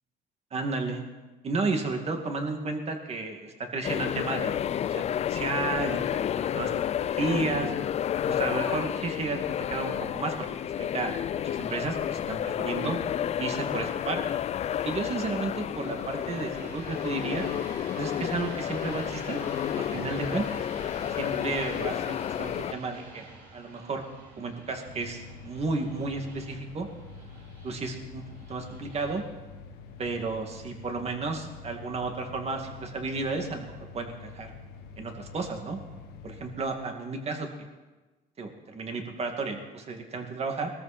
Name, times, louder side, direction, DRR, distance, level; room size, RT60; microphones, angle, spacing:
voice 1, 0.5-1.0 1.4-5.0 5.3-7.7 8.3-10.3 10.6-13.0 13.4-14.2 14.8-17.5 18.0-19.4 19.8-20.6 21.2-23.3 23.5-24.1 24.4-26.9 27.6-29.2 30.0-34.5 35.0-35.8 36.2-37.5 38.4-40.7, right 3 dB, 40° right, 4 dB, 2.3 m, -33 dB
sound 1, 3.8-22.7, left 10 dB, 40° left, 0.4 m, -31 dB
sound 2, 12.2-31.1, right 3 dB, 70° right, 5.6 m, -48 dB
sound 3, 24.9-36.6, left 5 dB, 85° left, 1.5 m, -46 dB
20.5 x 13.5 x 4.4 m, 1.2 s
cardioid pair, 110°, 17 cm